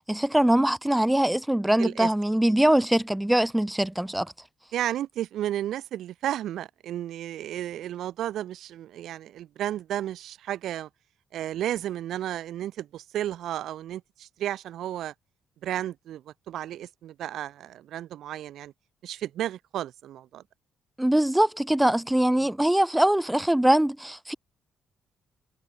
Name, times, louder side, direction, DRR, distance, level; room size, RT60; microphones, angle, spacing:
voice 1, 0.1-4.3 21.0-24.3, right 1 dB, 5° right, 1.6 m, -22 dB
voice 2, 1.8-2.1 4.7-10.9 11.3-15.1 15.6-18.7 19.0-20.4, right 12 dB, 75° right, 6.1 m, -33 dB
cardioid pair, 90°, 0 cm